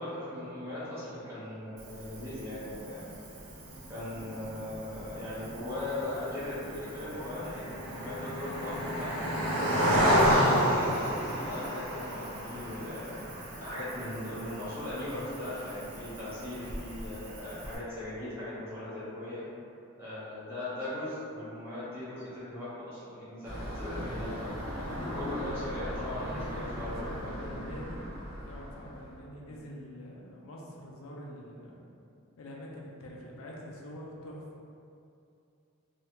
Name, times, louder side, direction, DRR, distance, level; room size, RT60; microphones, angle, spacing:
voice 1, 0.0-3.1 3.9-9.1 9.8-13.2 13.6-19.5 20.0-24.5 25.1-27.3 29.5-29.6, left 1 dB, 10° right, -12 dB, 0.9 m, -39 dB
Cricket, 1.8-17.8, equal, 90° right, 0.7 m, -32 dB
sound 1, 23.4-29.2, equal, 60° right, 0.9 m, -38 dB
voice 2, 24.8-25.4 26.1-28.0 28.4-31.8 32.4-34.4, equal, 75° left, -2 dB, 0.5 m, -45 dB
3.1 x 2.4 x 2.9 m, 2.6 s
head